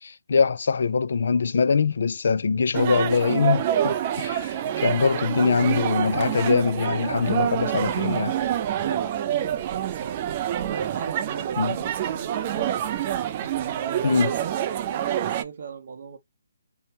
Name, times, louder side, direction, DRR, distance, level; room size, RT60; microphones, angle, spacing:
voice 1, 0.0-8.4 11.6-11.8 14.0-14.3, left 5 dB, 65° left, 0.3 m, -23 dB
sound 1, 2.7-15.4, right 10 dB, 30° right, 0.3 m, -27 dB
voice 2, 3.8-4.2 8.8-12.7 13.4-16.2, right 5 dB, 55° right, 0.7 m, -38 dB
2.8 x 2.1 x 2.7 m
hypercardioid pair, 155°, 0 cm